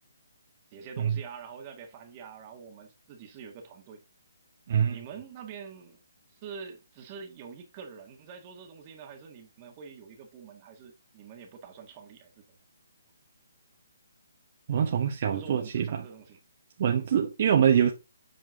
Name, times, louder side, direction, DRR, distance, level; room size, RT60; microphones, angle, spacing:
voice 1, 0.7-4.0 4.9-6.0 6.3-12.6 15.3-16.4 17.7-17.9, right 6 dB, 25° right, 1.5 m, -46 dB
voice 2, 4.7-5.0 14.7-16.0 16.8-17.9, right 8 dB, 40° right, 1.1 m, -24 dB
7.8 x 4.5 x 3.6 m
hypercardioid pair, 165°, 0 cm